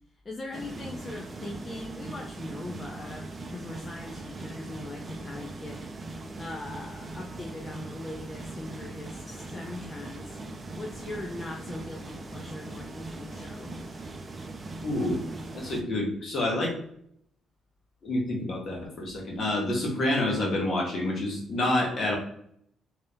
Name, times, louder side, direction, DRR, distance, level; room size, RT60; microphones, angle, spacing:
voice 1, 0.2-5.8 6.4-10.4 10.7-13.7, left 2 dB, 25° left, 0 dB, 0.6 m, -40 dB
sound 1, 0.5-15.8, right 2 dB, 30° right, 0.6 m, -40 dB
voice 2, 14.8-15.2 15.5-16.7 18.0-22.2, left 1 dB, 50° left, -1 dB, 1.5 m, -28 dB
3.3 x 2.9 x 3.5 m, 0.68 s
cardioid pair, 90°, 0 cm